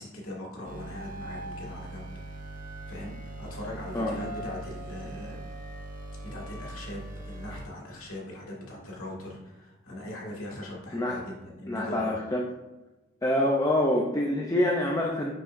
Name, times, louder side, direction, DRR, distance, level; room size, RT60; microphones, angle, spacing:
voice 1, 0.0-2.5 2.8-5.4 6.3-12.2, left 1 dB, 80° left, -3 dB, 1.9 m, -40 dB
sound 1, 0.6-7.7, right 1 dB, 40° right, 1.0 m, -40 dB
voice 2, 11.7-12.5 13.2-15.3, left 1 dB, 15° left, -1 dB, 0.5 m, -26 dB
6.6 x 5.8 x 2.6 m, 1.1 s
head